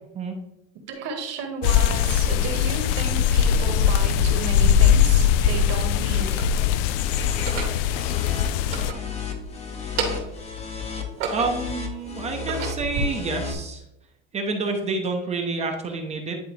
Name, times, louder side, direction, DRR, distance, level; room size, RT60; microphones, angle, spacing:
voice 1, 0.7-6.4, right 4 dB, 45° right, 4 dB, 1.6 m, -33 dB
sound 1, 1.6-8.9, left 8 dB, 50° left, 0.5 m, -21 dB
sound 2, 6.0-6.6 7.3-7.8 8.5-9.5 9.8-10.4 10.9-11.8 12.3-13.0, right 4 dB, 85° right, 2.1 m, -31 dB
sound 3, 6.9-13.5, left 5 dB, 15° left, 0.8 m, -34 dB
voice 2, 11.3-13.8 14.3-16.4, right 3 dB, 20° right, 3 dB, 0.8 m, -28 dB
10.0 x 3.8 x 3.3 m, 0.84 s
supercardioid pair, 145°, 37 cm